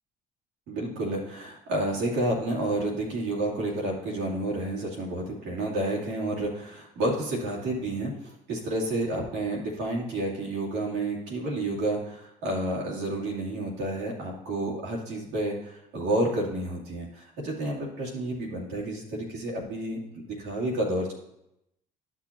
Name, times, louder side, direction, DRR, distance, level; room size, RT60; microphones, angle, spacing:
voice 1, 0.7-21.1, right 1 dB, 85° right, -4 dB, 2.5 m, -30 dB
11.5 x 6.2 x 2.8 m, 0.82 s
supercardioid pair, 70°, 18 cm